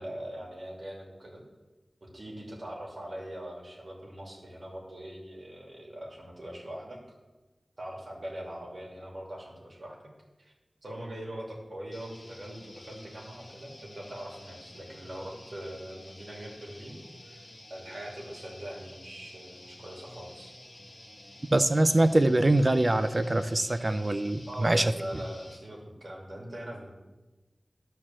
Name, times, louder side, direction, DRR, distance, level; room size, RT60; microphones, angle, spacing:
voice 1, 0.0-1.4 2.0-7.0 7.8-10.1 10.4-10.5 10.8-20.5 24.5-26.9, right 1 dB, 60° right, -2 dB, 2.6 m, -42 dB
sound 1, 11.9-25.6, left 1 dB, 35° left, 1.8 m, -50 dB
voice 2, 21.5-24.9, right 1 dB, 40° right, 11 dB, 0.6 m, -23 dB
11.0 x 4.6 x 7.3 m, 1.2 s
wide cardioid pair, 45°, 0 cm